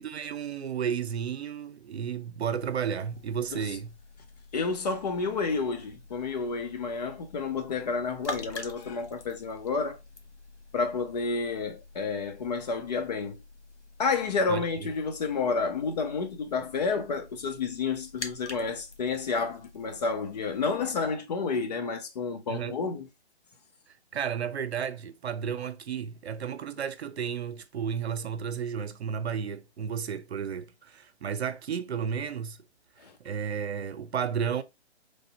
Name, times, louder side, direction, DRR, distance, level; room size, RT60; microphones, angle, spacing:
voice 1, 0.0-3.9 14.5-14.6 22.5-22.8 24.1-32.6 33.2-34.6, right 7 dB, 70° right, 0.7 m, -32 dB
sound 1, 2.6-21.2, left 2 dB, 90° left, 1.0 m, -47 dB
voice 2, 4.5-10.0 10.7-13.4 14.0-23.1 33.0-33.2, left 4 dB, 40° left, 0.7 m, -30 dB
3.3 x 2.7 x 4.0 m
figure-of-eight pair, 145°, 34 cm